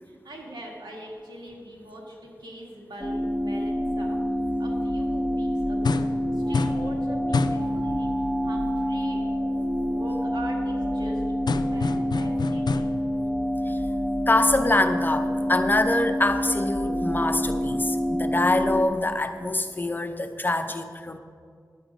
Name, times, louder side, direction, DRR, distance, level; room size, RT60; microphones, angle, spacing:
voice 1, 0.0-4.2 4.6-6.1 6.3-9.2 9.8-11.2 11.6-12.8, right 1 dB, 90° right, -2 dB, 1.9 m, -42 dB
sound 1, 3.0-18.8, equal, 20° right, 1.3 m, -27 dB
sound 2, 5.8-6.2 6.5-6.9 7.3-7.7 11.5-13.1, left 4 dB, 75° left, 0.4 m, -27 dB
voice 2, 14.3-21.2, left 2 dB, 25° left, 8 dB, 0.6 m, -24 dB
10.5 x 7.6 x 5.1 m, 2.1 s
wide cardioid pair, 80°, 7 cm